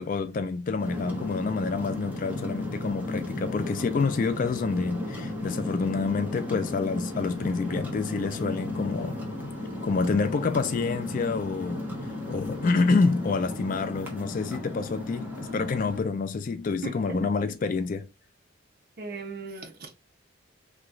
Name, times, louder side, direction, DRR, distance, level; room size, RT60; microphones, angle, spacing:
voice 1, 0.0-9.2 9.8-11.9 12.3-18.1, left 4 dB, 40° left, 0.3 m, -28 dB
sound 1, 0.8-16.0, left 1 dB, 10° right, 0.9 m, -35 dB
voice 2, 16.8-17.3 19.0-19.9, right 4 dB, 50° right, 0.8 m, -37 dB
2.9 x 2.3 x 3.6 m
head